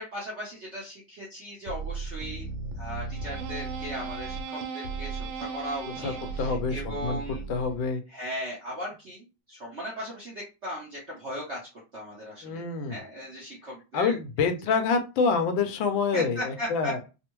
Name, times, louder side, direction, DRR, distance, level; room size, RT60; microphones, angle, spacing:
voice 1, 0.0-2.5 2.8-7.4 8.1-11.6 11.9-12.6 12.9-14.1 14.7-14.8 16.1-17.1, equal, 50° right, -4 dB, 0.9 m, -37 dB
sound 1, 1.7-7.9, right 4 dB, 85° right, 1.4 m, -36 dB
voice 2, 6.0-7.2 7.5-8.0 12.4-13.0 13.9-17.0, left 5 dB, 80° left, 6 dB, 1.4 m, -27 dB
3.5 x 2.0 x 3.0 m, 0.29 s
omnidirectional pair, 2.1 m